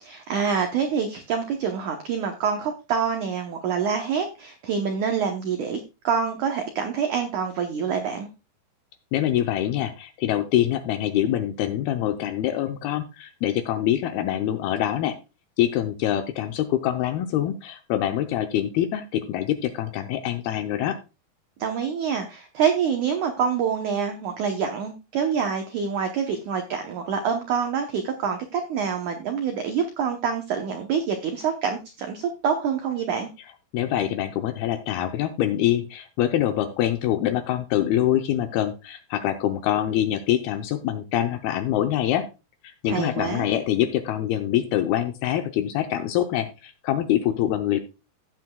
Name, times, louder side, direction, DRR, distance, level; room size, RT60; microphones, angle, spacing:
voice 1, 0.0-5.8 6.0-8.3 21.6-33.3 42.9-43.5, right 6 dB, 80° right, 5 dB, 1.7 m, -26 dB
voice 2, 9.1-15.2 15.6-21.0 33.7-42.3 42.6-47.8, left 12 dB, 80° left, 7 dB, 2.4 m, -25 dB
15.5 x 7.5 x 2.3 m, 0.29 s
omnidirectional pair, 4.9 m